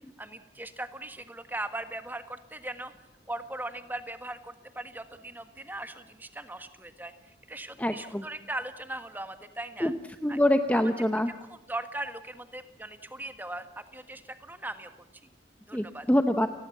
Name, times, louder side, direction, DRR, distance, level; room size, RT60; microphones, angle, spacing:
voice 1, 0.2-2.9 3.3-9.9 10.3-10.4 10.7-10.9 11.4-14.9 15.7-16.1, right 2 dB, 10° right, 9 dB, 1.5 m, -39 dB
voice 2, 7.8-8.2 9.8-9.9 10.2-11.3 15.7-16.5, left 1 dB, 10° left, 7 dB, 0.8 m, -25 dB
29.5 x 20.0 x 7.2 m, 0.95 s
head